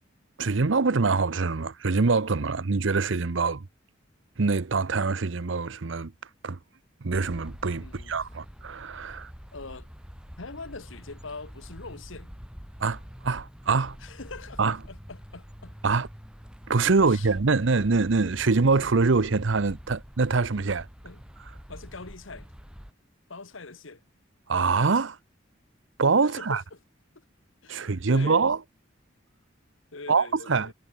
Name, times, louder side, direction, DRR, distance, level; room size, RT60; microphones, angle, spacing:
voice 1, 0.4-3.7 4.4-6.1 6.4-6.6 7.0-9.3 12.8-14.0 14.6-14.8 15.8-16.1 16.7-20.9 24.5-25.2 26.0-26.6 27.7-28.6 30.1-30.7, right 4 dB, 70° right, 0.8 m, -24 dB
sound 1, 7.1-22.9, equal, 5° right, 2.9 m, -45 dB
voice 2, 7.8-8.2 9.5-9.9 10.4-12.3 14.0-15.8 17.0-17.3 21.0-21.2 21.7-22.5 23.3-24.0 26.2-26.8 27.6-28.4 29.9-30.7, left 3 dB, 75° left, 1.7 m, -43 dB
head